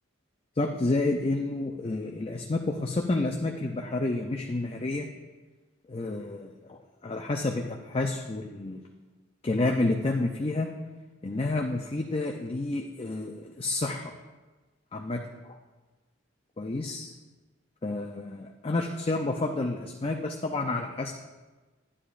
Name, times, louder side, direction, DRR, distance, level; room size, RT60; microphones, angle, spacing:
voice 1, 0.6-5.1 5.9-8.8 9.4-10.7 11.2-14.0 14.9-15.6 16.6-17.1 17.8-21.1, left 2 dB, 30° left, 2 dB, 0.5 m, -30 dB
12.5 x 9.8 x 2.5 m, 1.2 s
head